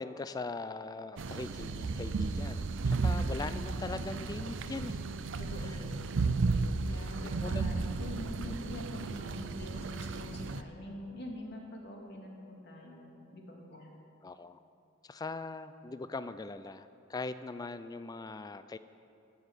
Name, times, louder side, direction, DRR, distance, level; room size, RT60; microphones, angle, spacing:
voice 1, 0.0-5.0 7.2-7.6 14.2-14.6 15.0-18.8, left 3 dB, 20° left, 12 dB, 0.3 m, -41 dB
sound 1, 1.2-10.6, right 3 dB, 65° right, 0.5 m, -34 dB
voice 2, 3.1-3.5 5.4-6.3 6.9-13.9, left 1 dB, 55° left, -1 dB, 2.2 m, -45 dB
14.0 x 7.2 x 8.1 m, 2.7 s
head